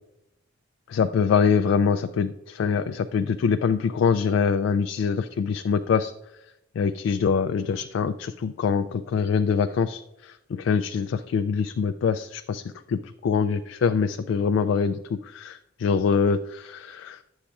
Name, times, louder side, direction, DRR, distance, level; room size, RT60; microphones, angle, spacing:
voice 1, 0.9-6.1 6.8-17.2, left 6 dB, 90° left, 10 dB, 0.3 m, -24 dB
9.9 x 7.1 x 2.3 m, 0.88 s
head